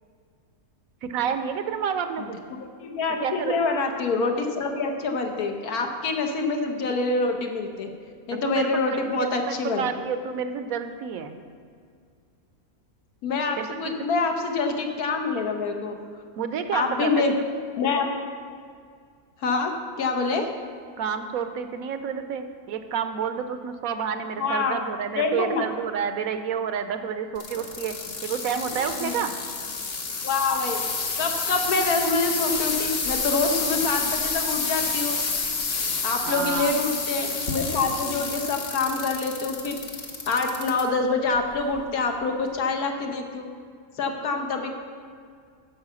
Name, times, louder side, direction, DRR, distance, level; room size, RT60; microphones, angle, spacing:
voice 1, 1.0-2.4 3.2-3.6 8.3-11.4 13.5-13.9 16.4-17.3 21.0-27.9 28.2-29.3 36.2-36.7, right 7 dB, 75° right, 9 dB, 1.0 m, -29 dB
voice 2, 2.8-7.9 8.3-9.9 13.2-16.0 16.7-17.4 17.8-18.1 19.4-20.5 24.4-24.8 25.2-25.7 29.0-29.2 30.2-30.8 31.2-35.2 36.0-39.8 40.3-43.5 44.0-44.7, left 3 dB, 75° left, 4 dB, 1.5 m, -26 dB
sound 1, 27.4-40.8 41.4-41.8 42.5-42.6, left 4 dB, 55° left, 1.4 m, -29 dB
9.6 x 5.6 x 6.9 m, 2.2 s
omnidirectional pair, 1.6 m